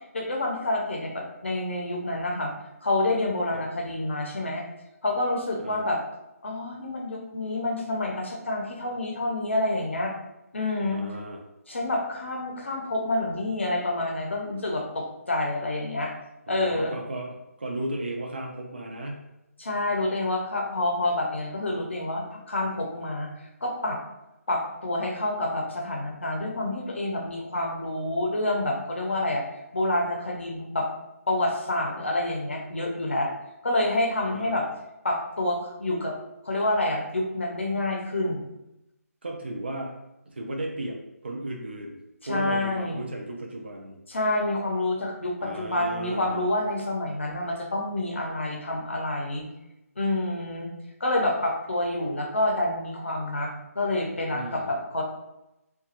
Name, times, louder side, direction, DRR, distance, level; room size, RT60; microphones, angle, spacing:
voice 1, 0.1-2.5 2.8-4.7 5.0-6.0 6.4-10.1 10.5-11.1 11.7-16.1 16.5-16.9 19.6-24.0 24.5-29.4 29.7-30.9 31.3-33.3 33.6-34.7 35.0-36.2 36.4-38.5 42.3-43.1 44.1-49.5 50.0-50.7 51.0-55.0, left 2 dB, 50° left, 0 dB, 0.6 m, -28 dB
voice 2, 10.9-11.4 16.5-19.3 34.3-34.7 39.2-40.0 40.3-42.0 42.3-44.0 45.4-46.4 54.3-54.8, right 1 dB, 40° right, 1 dB, 0.4 m, -35 dB
2.9 x 2.2 x 2.8 m, 0.91 s
hypercardioid pair, 180°, 9 cm